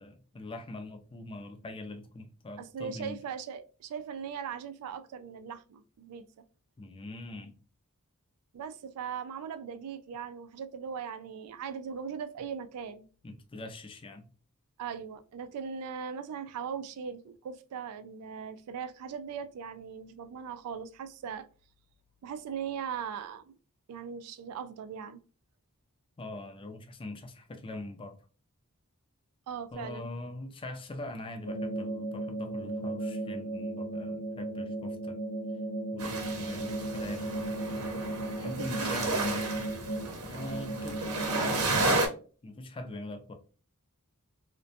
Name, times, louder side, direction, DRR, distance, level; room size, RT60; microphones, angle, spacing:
voice 1, 0.0-3.2 6.8-7.6 13.2-14.3 26.2-28.2 29.7-35.2 35.9-37.4 38.4-39.4 40.2-42.1 42.4-43.3, left 2 dB, 25° left, 0.4 m, -42 dB
voice 2, 2.6-6.3 8.5-13.1 14.8-21.5 22.2-23.5 23.9-25.2 29.5-30.1 38.4-39.4, right 7 dB, 90° right, 0.3 m, -39 dB
sound 1, 31.5-41.8, right 1 dB, 85° left, 0.5 m, -36 dB
sound 2, 36.0-42.1, right 2 dB, 70° right, 0.7 m, -32 dB
2.5 x 2.1 x 2.5 m
head